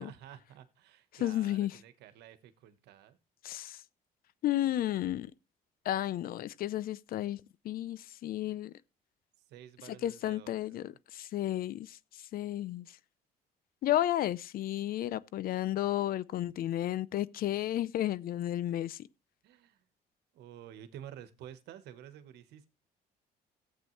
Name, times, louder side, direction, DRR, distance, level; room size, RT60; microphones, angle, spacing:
voice 1, 0.0-3.2 9.5-11.0 19.4-19.8 20.3-22.7, right 10 dB, 80° right, 1.3 m, -51 dB
voice 2, 1.2-1.8 3.4-3.8 4.4-5.3 5.8-8.7 9.9-12.0 12.3-12.9 13.8-19.0, left 13 dB, 60° left, 0.6 m, -32 dB
15.0 x 8.2 x 3.2 m
cardioid pair, 110°, 17 cm